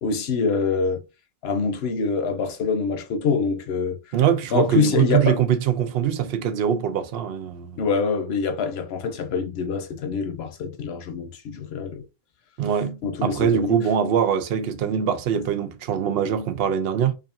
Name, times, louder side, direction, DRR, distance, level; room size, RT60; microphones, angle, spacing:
voice 1, 0.0-1.0 1.4-4.0 4.5-5.4 7.8-12.0 13.0-13.8, left 5 dB, 90° left, 0.9 m, -25 dB
voice 2, 4.1-7.8 12.6-17.1, right 8 dB, 75° right, 0.8 m, -23 dB
5.0 x 2.5 x 2.6 m
omnidirectional pair, 1.0 m